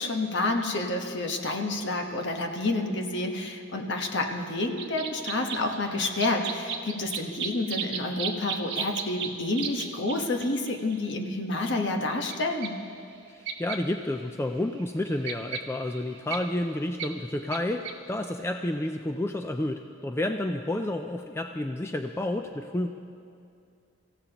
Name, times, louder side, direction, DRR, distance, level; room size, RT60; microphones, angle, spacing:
voice 1, 0.0-12.8, left 2 dB, 55° left, 3 dB, 1.2 m, -29 dB
sound 1, 4.8-11.0 12.3-12.4 12.6-12.7 13.5-13.8 14.2-14.3 14.6-16.4 17.0-17.1 17.5-17.6 17.8-18.0, right 6 dB, 55° right, 1.1 m, -35 dB
voice 2, 13.3-22.9, left 1 dB, 10° left, 5 dB, 0.3 m, -30 dB
25.0 x 15.5 x 3.0 m, 2.4 s
head